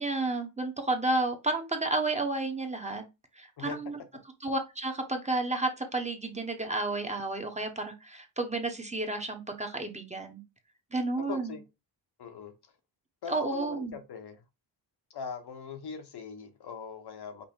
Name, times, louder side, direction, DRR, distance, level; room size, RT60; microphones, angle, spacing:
voice 1, 0.0-3.0 3.3-4.0 4.4-10.4 10.9-11.5 13.3-13.9, right 2 dB, 15° right, 1.0 m, -31 dB
voice 2, 11.2-11.6 12.2-12.5 13.2-14.4 15.1-17.4, left 6 dB, 60° left, 1.0 m, -41 dB
5.4 x 2.1 x 4.4 m
cardioid pair, 90°, 44 cm